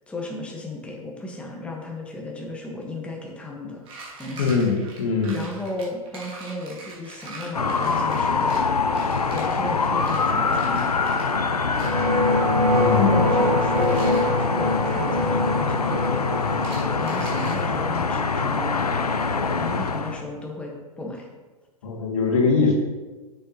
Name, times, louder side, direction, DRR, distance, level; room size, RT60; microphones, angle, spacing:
voice 1, 0.1-3.8 4.2-4.5 5.3-8.6 9.3-10.9 12.9-16.3 17.0-18.8 19.6-20.7 21.0-21.3, left 2 dB, 5° left, -2 dB, 1.3 m, -34 dB
sound 1, 3.8-11.4 11.7-12.1 13.6-14.3 16.5-17.6, right 3 dB, 30° right, 2.5 m, -42 dB
voice 2, 4.4-5.4 12.7-13.2 21.8-22.7, left 4 dB, 60° left, 0 dB, 2.0 m, -22 dB
sound 2, 7.5-20.2, left 4 dB, 90° left, 0.6 m, -24 dB
sound 3, 11.7-20.4, left 1 dB, 85° right, 1.0 m, -25 dB
8.8 x 6.9 x 2.9 m, 1.2 s
figure-of-eight pair, 105°, 19 cm